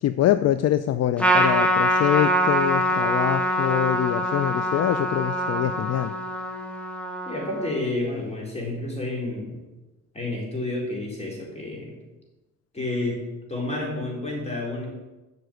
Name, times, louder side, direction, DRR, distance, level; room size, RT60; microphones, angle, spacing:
voice 1, 0.0-6.1, left 12 dB, 60° left, 12 dB, 0.4 m, -24 dB
Trumpet, 1.2-7.9, equal, 5° left, 1.4 m, -24 dB
voice 2, 7.3-9.6 10.1-11.9 12.7-13.2 13.5-14.9, left 2 dB, 20° left, -2 dB, 4.2 m, -30 dB
8.0 x 6.0 x 7.8 m, 1.1 s
cardioid pair, 90°, 30 cm